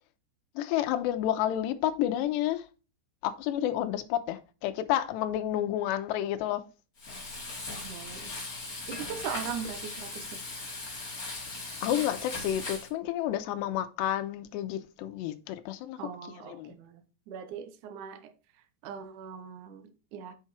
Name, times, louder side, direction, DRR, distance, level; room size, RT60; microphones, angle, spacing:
voice 1, 0.6-2.6 3.2-6.6 11.8-16.0 16.4-16.8, left 12 dB, 80° left, 2.9 m, -30 dB
Frying (food), 7.0-12.9, left 3 dB, 25° left, 2.4 m, -39 dB
voice 2, 7.8-8.3 8.9-10.3 16.0-18.3 18.8-20.3, right 7 dB, 65° right, 2.0 m, -40 dB
7.4 x 6.0 x 4.3 m
omnidirectional pair, 5.1 m